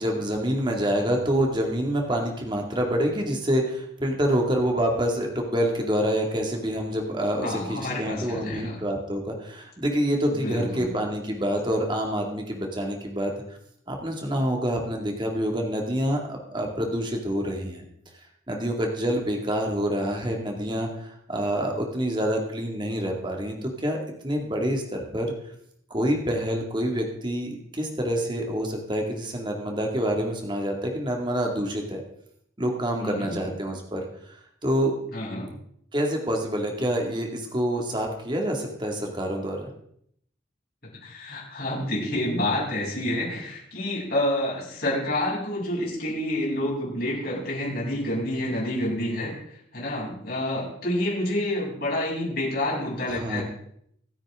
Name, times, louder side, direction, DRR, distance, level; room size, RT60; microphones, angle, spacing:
voice 1, 0.0-13.3 13.9-17.8 18.5-24.0 24.2-25.3 25.9-32.0 32.6-34.0 34.3-35.0 35.9-39.7 53.1-53.4, equal, 25° right, 1 dB, 2.3 m, -27 dB
voice 2, 7.4-8.7 10.3-10.9 33.0-33.5 35.1-35.5 41.0-49.3 49.7-53.4, left 1 dB, 50° left, -5 dB, 7.8 m, -28 dB
25.5 x 8.9 x 3.7 m, 0.70 s
head